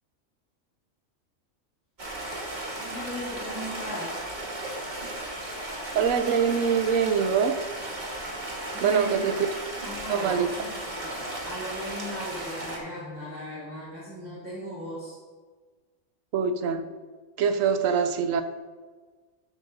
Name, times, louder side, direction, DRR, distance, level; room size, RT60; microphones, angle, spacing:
Stream, 2.0-12.8, right 1 dB, 35° right, 1.5 m, -35 dB
voice 1, 2.8-4.2 8.2-8.3 8.6-9.3 9.8-10.7 10.9-15.2, equal, 5° right, 2.6 m, -38 dB
voice 2, 5.9-7.7 8.8-9.5 10.1-10.5 16.3-16.9 17.4-18.4, right 6 dB, 75° right, 1.0 m, -24 dB
12.5 x 7.6 x 2.6 m
omnidirectional pair, 1.4 m